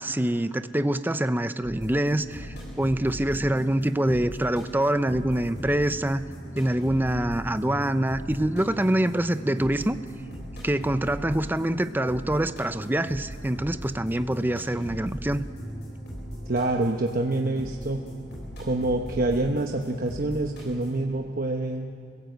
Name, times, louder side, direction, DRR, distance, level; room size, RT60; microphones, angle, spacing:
voice 1, 0.0-6.2 6.6-10.0 10.6-15.4, right 1 dB, 10° right, 11 dB, 0.6 m, -25 dB
sound 1, 1.6-21.0, equal, 65° left, 7.4 m, -39 dB
voice 2, 16.5-18.0 18.6-21.9, right 2 dB, 50° right, 2 dB, 1.0 m, -26 dB
27.5 x 16.5 x 8.0 m, 2.6 s
head